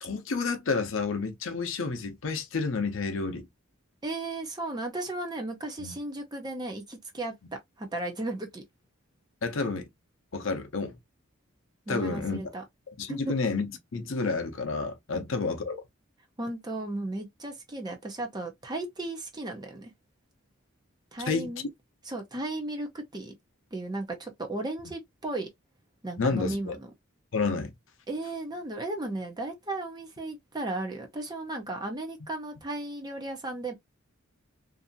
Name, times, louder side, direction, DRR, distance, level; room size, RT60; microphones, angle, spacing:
voice 1, 0.0-3.5 5.8-5.9 9.4-9.9 10.3-10.9 11.9-12.4 13.0-13.7 13.9-15.8 21.3-21.5 26.2-26.8 27.3-27.7, left 4 dB, 65° left, 0.6 m, -30 dB
voice 2, 4.0-7.3 7.8-8.6 11.9-12.6 13.1-13.3 16.4-19.9 21.1-21.6 22.0-23.3 23.7-25.5 26.0-26.9 28.1-33.7, right 2 dB, 20° right, 0.6 m, -35 dB
2.6 x 2.6 x 2.5 m
head